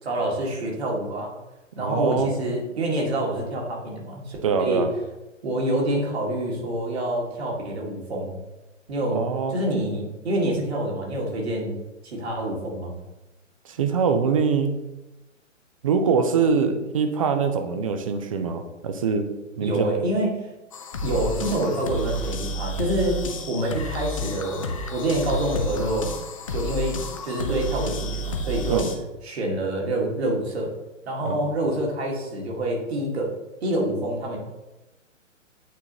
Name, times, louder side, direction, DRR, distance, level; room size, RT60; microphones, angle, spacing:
voice 1, 0.0-1.3 1.8-4.9 5.4-8.3 8.9-11.8 12.0-13.0 19.6-20.4 21.0-23.2 23.5-26.1 26.5-28.8 29.2-30.7 31.1-33.3 33.6-34.4, right 1 dB, 55° right, -1 dB, 1.9 m, -27 dB
voice 2, 1.8-2.3 4.4-4.9 9.1-9.6 13.6-14.8 15.8-19.3 19.6-19.9 28.7-28.9 31.2-31.4, right 5 dB, 30° right, 7 dB, 0.5 m, -23 dB
sound 1, 20.7-29.0, left 1 dB, 30° left, 0.4 m, -31 dB
8.6 x 3.7 x 3.0 m, 1.0 s
figure-of-eight pair, 130°, 38 cm